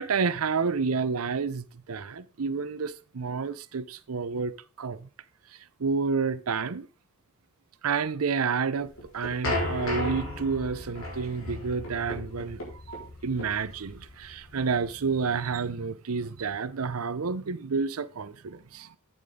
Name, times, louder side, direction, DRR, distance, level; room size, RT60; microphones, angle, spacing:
voice 1, 0.0-5.1 5.8-6.9 7.8-12.6 12.9-18.9, right 5 dB, 90° right, 0.6 m, -30 dB
sound 1, 8.8-15.6, left 1 dB, 70° left, 4.3 m, -35 dB
8.8 x 8.5 x 3.7 m
head